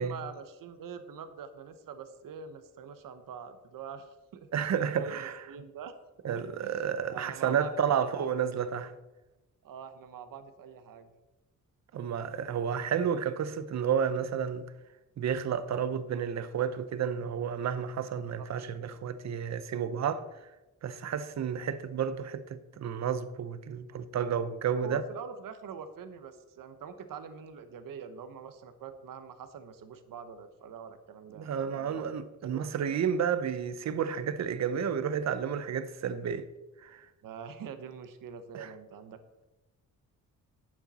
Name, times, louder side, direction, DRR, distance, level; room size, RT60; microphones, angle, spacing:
voice 1, 0.0-4.5 5.0-6.0 6.3-6.8 7.1-8.3 9.6-11.1 18.4-18.5 18.8-18.9 24.8-32.0 32.4-33.0 37.2-39.2, right 6 dB, 75° right, 1.1 m, -44 dB
voice 2, 4.5-5.5 6.2-8.9 11.9-14.7 15.2-20.5 20.8-25.0 31.3-36.5 36.8-37.1 38.5-38.7, right 7 dB, 55° right, 0.8 m, -31 dB
11.5 x 8.8 x 4.2 m
wide cardioid pair, 145°, 33 cm